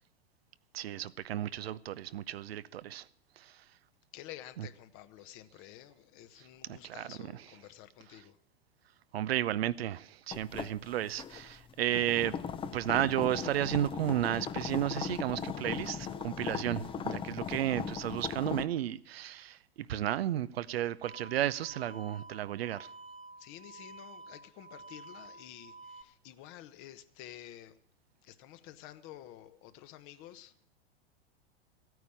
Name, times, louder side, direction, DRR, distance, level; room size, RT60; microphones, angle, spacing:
voice 1, 0.7-3.1 3.4-3.6 4.6-4.7 6.7-7.3 9.1-12.4 12.7-22.9, right 12 dB, 75° right, 0.7 m, -33 dB
voice 2, 4.1-8.4 23.4-27.8 28.2-30.5, left 12 dB, 45° left, 1.2 m, -50 dB
sound 1, 10.3-18.7, left 7 dB, 15° left, 0.6 m, -38 dB
sound 2, 21.0-26.0, right 3 dB, 20° right, 1.0 m, -51 dB
15.5 x 9.4 x 8.6 m
hypercardioid pair, 105°, 31 cm